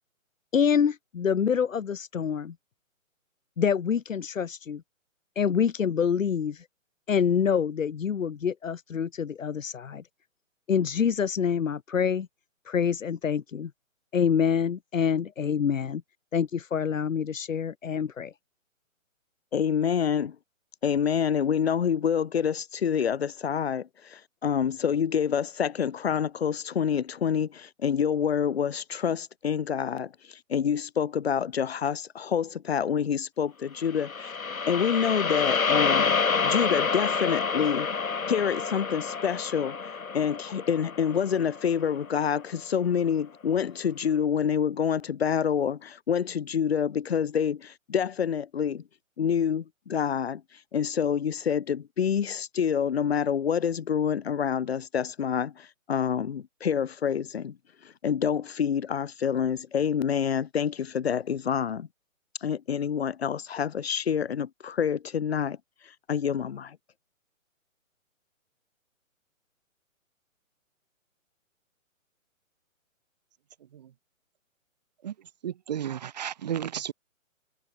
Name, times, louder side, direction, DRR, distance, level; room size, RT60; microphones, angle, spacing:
voice 1, 0.5-2.5 3.6-4.8 5.3-6.6 7.1-10.0 10.7-12.3 12.7-13.7 14.1-16.0 16.3-18.3, left 7 dB, 70° left, 1.5 m, -26 dB
voice 2, 19.5-20.4 20.8-34.3 34.7-36.2 36.4-37.9 38.3-39.8 40.1-48.8 49.2-50.4 50.7-57.6 57.8-61.9 62.4-65.6 66.1-66.8, left 7 dB, 50° left, 4.8 m, -27 dB
sound 1, 33.9-42.2, left 5 dB, 90° left, 5.3 m, -28 dB
voice 3, 75.0-76.9, right 10 dB, 30° right, 1.9 m, -34 dB
hypercardioid pair, 170°, 40 cm